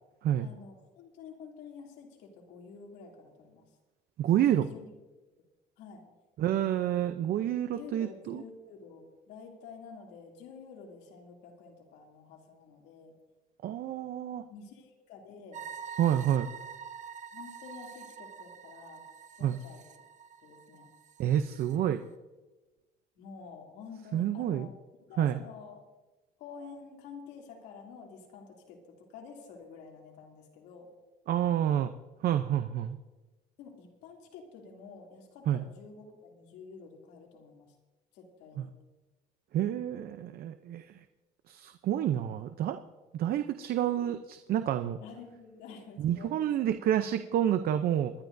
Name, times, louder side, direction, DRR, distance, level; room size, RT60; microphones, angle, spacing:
voice 1, 0.4-3.6 4.3-4.9 5.8-6.0 7.7-13.1 14.5-15.6 17.3-19.0 19.4-19.8 20.4-20.9 23.1-24.8 25.1-25.8 26.4-30.9 33.6-37.7 38.1-38.7 45.0-46.8, left 5 dB, 90° left, 0 dB, 2.8 m, -49 dB
voice 2, 4.2-4.7 6.4-8.4 13.6-14.4 16.0-16.5 19.4-19.6 21.2-22.0 24.1-24.7 25.2-25.4 31.3-31.9 32.2-33.0 35.5-35.6 39.5-40.9 41.5-42.8 43.1-45.0 46.0-48.1, right 11 dB, 65° right, 9 dB, 0.7 m, -28 dB
sound 1, 15.5-21.8, right 7 dB, 45° right, 1.1 m, -46 dB
23.0 x 11.5 x 2.7 m, 1.1 s
cardioid pair, 110°, 17 cm